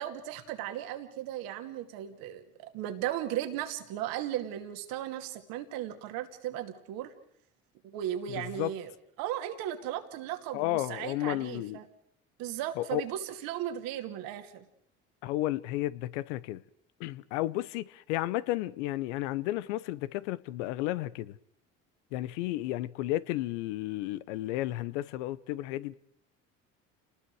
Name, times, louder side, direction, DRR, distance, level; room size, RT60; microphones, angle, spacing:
voice 1, 0.0-7.1 7.8-8.9 9.2-11.8 12.4-14.6, right 11 dB, 70° right, 2.6 m, -36 dB
voice 2, 8.3-8.7 10.5-11.8 12.8-13.0 15.2-16.6 17.0-21.4 22.1-25.9, left 16 dB, 80° left, 0.9 m, -32 dB
29.0 x 20.0 x 4.8 m
hypercardioid pair, 70°, 36 cm